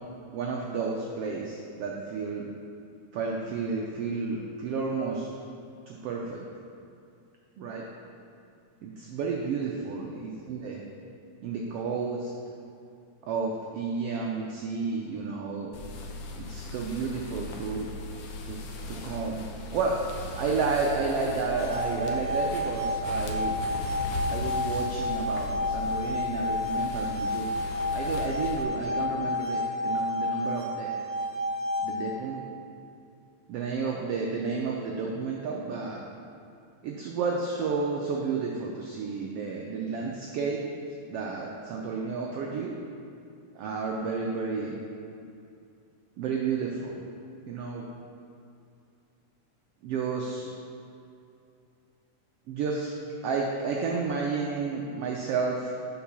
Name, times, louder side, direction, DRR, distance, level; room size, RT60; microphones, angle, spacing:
voice 1, 0.3-2.5 3.1-5.3 5.9-6.4 7.6-7.8 8.8-10.8 11.4-12.3 13.2-15.7 16.3-17.9 18.4-18.6 18.9-19.4 19.7-20.0 20.4-23.6 24.3-27.5 27.9-30.9 31.8-32.5 33.5-36.0 36.8-40.6 41.1-42.8 43.5-44.8 46.2-47.0 47.5-47.9 49.8-50.5 52.5-52.9 53.2-55.7, right 4 dB, 90° right, -1 dB, 1.3 m, -31 dB
sound 1, 15.7-28.6, left 2 dB, 80° left, 1.3 m, -38 dB
sound 2, 21.4-32.3, left 1 dB, 50° right, 1.3 m, -31 dB
7.1 x 4.7 x 6.0 m, 2.5 s
omnidirectional pair, 3.5 m